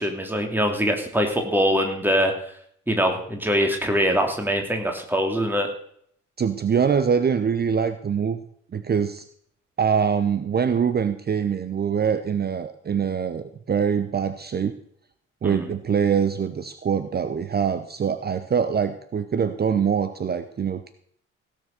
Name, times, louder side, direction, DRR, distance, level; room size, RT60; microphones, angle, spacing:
voice 1, 0.0-2.3 2.9-5.7 15.4-15.7, equal, 5° right, 3 dB, 2.9 m, -23 dB
voice 2, 6.4-8.4 8.7-9.2 9.8-14.7 15.4-20.9, right 7 dB, 25° right, 11 dB, 0.9 m, -24 dB
17.0 x 6.7 x 6.7 m, 0.65 s
figure-of-eight pair, 50°, 39 cm